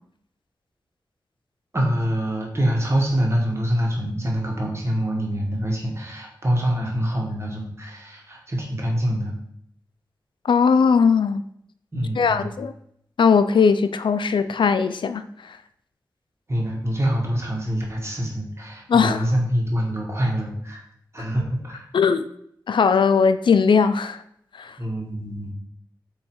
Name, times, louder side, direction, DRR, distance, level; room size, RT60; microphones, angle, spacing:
voice 1, 1.7-9.3 11.9-12.5 16.5-20.8 21.1-21.9 24.8-25.5, equal, 35° right, 1.7 m, -25 dB
voice 2, 10.4-11.4 12.2-12.7 13.2-15.6 18.9-19.3 21.9-22.3 22.7-24.2 24.6-24.8, left 5 dB, 85° left, 0.4 m, -19 dB
7.6 x 3.2 x 4.6 m
wide cardioid pair, 105°, 8 cm